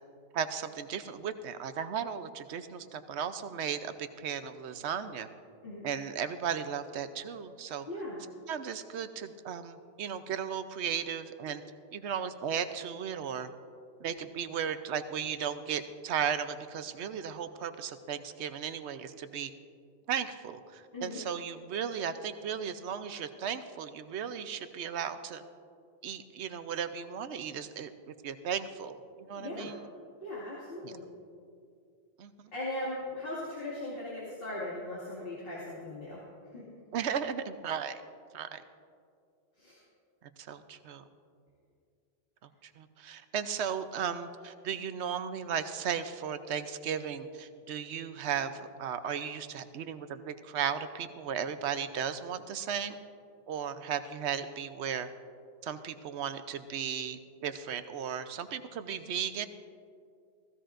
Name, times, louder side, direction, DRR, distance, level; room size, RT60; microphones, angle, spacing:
voice 1, 0.3-5.3 5.8-7.9 8.5-11.6 11.9-13.5 14.0-19.5 20.1-25.4 26.0-27.9 28.2-29.0 29.3-29.8 30.8-30.9 32.2-32.3 36.9-38.0 38.3-38.6 40.4-41.0 42.8-53.0 53.5-55.1 55.6-59.5, right 8 dB, 90° right, 11 dB, 0.9 m, -35 dB
voice 2, 7.9-8.2 20.9-21.2 29.4-29.7 30.2-31.0 32.5-36.2 36.5-36.6 39.6-39.8, left 1 dB, 60° left, -7 dB, 2.4 m, -38 dB
16.0 x 15.5 x 2.5 m, 2.3 s
omnidirectional pair, 1.1 m